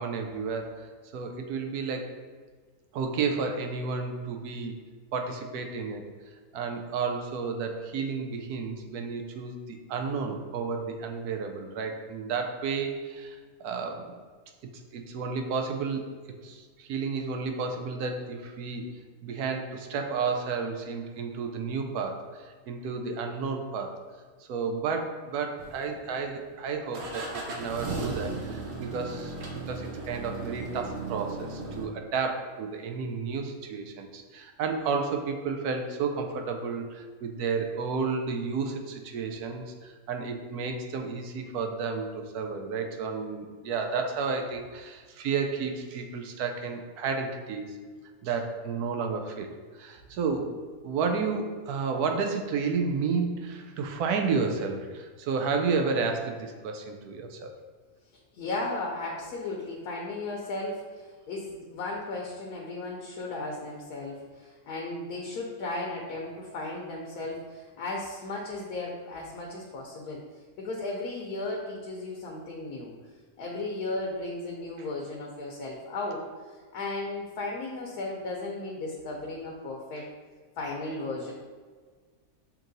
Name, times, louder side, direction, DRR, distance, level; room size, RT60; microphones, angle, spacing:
voice 1, 0.0-2.1 2.9-4.8 5.1-6.0 6.5-14.2 14.9-16.0 16.4-18.8 19.2-24.0 24.4-29.3 29.7-47.8 48.2-49.5 49.7-50.5 50.8-57.5 74.8-74.9 80.0-80.1, right 5 dB, 90° right, 4 dB, 1.1 m, -32 dB
sound 1, 25.6-26.3 26.9-31.9, right 3 dB, 55° right, 0.8 m, -36 dB
voice 2, 58.3-70.2 70.6-72.9 73.4-76.2 76.7-80.1 80.6-81.3, left 2 dB, 85° left, -2 dB, 1.2 m, -35 dB
7.0 x 3.0 x 2.6 m, 1.5 s
omnidirectional pair, 1.6 m